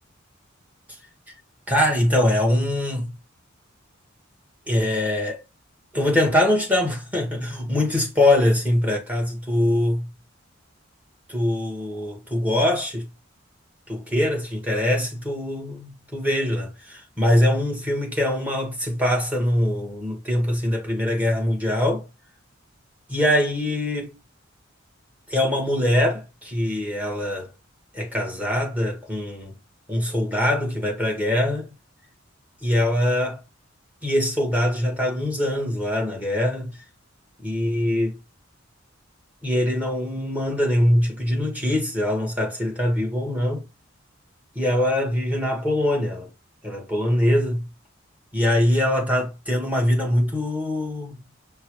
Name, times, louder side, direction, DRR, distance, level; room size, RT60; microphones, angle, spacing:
voice 1, 1.7-3.1 4.7-5.4 5.9-10.1 11.3-13.1 13.9-22.1 23.1-24.1 25.3-27.5 27.9-29.5 29.9-31.7 32.6-33.4 34.0-36.8 37.4-38.2 39.4-43.7 44.5-46.3 46.6-47.7 48.3-51.1, left 1 dB, 10° right, 1.2 m, -23 dB
5.4 x 2.2 x 3.0 m
head